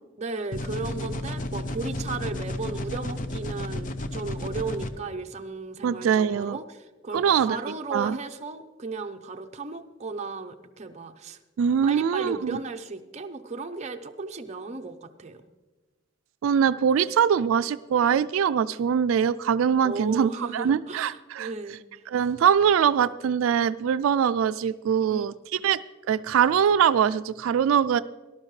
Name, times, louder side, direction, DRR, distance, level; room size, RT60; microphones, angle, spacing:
voice 1, 0.2-11.4 11.8-15.4 19.8-21.8 25.1-25.2 25.5-25.6, right 3 dB, 35° right, 5 dB, 0.7 m, -35 dB
sound 1, 0.5-4.9, left 1 dB, 40° left, 0.7 m, -32 dB
voice 2, 5.8-6.6 7.1-7.6 7.9-8.2 11.6-12.6 16.4-21.5 22.1-25.8 26.1-28.0, right 8 dB, 85° right, 14 dB, 0.3 m, -23 dB
18.0 x 12.0 x 3.2 m, 1.2 s
head